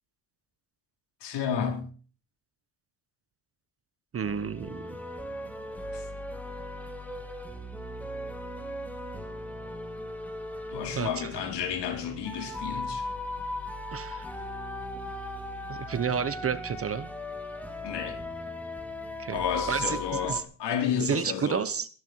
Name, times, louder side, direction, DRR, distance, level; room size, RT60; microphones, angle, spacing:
voice 1, 1.2-1.9 5.9-6.1 10.7-13.1 17.8-18.3 19.3-21.7, left 8 dB, 65° left, 4.6 m, -32 dB
voice 2, 4.1-5.0 10.9-11.3 13.9-14.3 15.7-17.1 19.2-19.4 19.7-20.4 21.0-21.9, right 7 dB, 30° right, 1.1 m, -30 dB
sound 1, 4.2-20.4, left 1 dB, 5° left, 2.5 m, -38 dB
21.0 x 11.5 x 4.7 m
cardioid pair, 130°, 44 cm